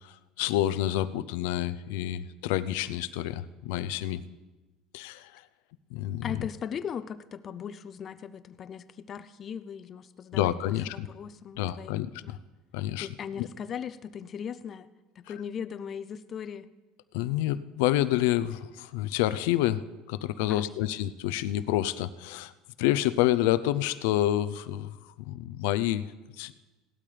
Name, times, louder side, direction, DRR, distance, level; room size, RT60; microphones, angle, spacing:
voice 1, 0.0-4.2 4.9-5.4 5.9-6.5 10.3-11.1 11.6-12.4 12.7-13.1 13.4-13.5 15.3-15.4 17.1-22.5 22.8-25.0 25.3-26.1 26.4-26.5, left 13 dB, 85° left, 14 dB, 0.5 m, -28 dB
voice 2, 6.2-12.4 13.0-14.9 15.2-16.7 20.5-21.0, left 7 dB, 35° left, 13 dB, 0.5 m, -39 dB
18.0 x 12.0 x 3.4 m, 1.2 s
cardioid pair, 135°, 0 cm